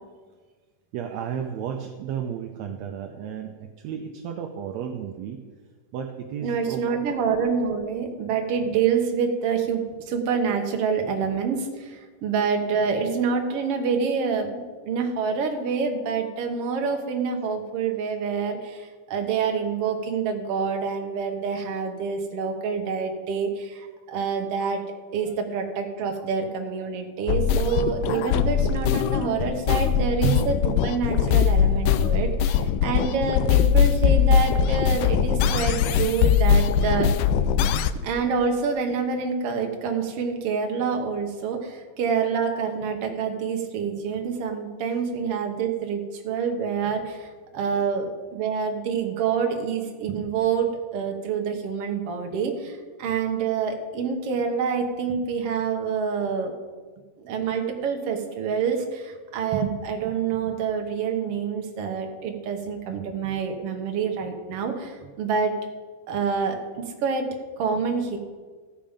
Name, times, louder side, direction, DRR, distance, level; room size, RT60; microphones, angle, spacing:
voice 1, 0.9-5.4 5.9-6.9 25.2-25.3 27.4-27.5 29.8-29.9 32.1-32.3 32.7-32.9 37.5-37.7 47.7-47.9, right 8 dB, 75° right, 4 dB, 1.6 m, -34 dB
voice 2, 6.4-24.8 25.1-37.1 38.0-47.3 47.5-56.5 57.2-65.5 66.1-67.3 67.6-68.2, right 6 dB, 60° right, 3 dB, 1.8 m, -27 dB
sound 1, 27.3-37.9, left 8 dB, 80° left, 2.0 m, -21 dB
14.5 x 7.2 x 5.1 m, 1.5 s
omnidirectional pair, 3.7 m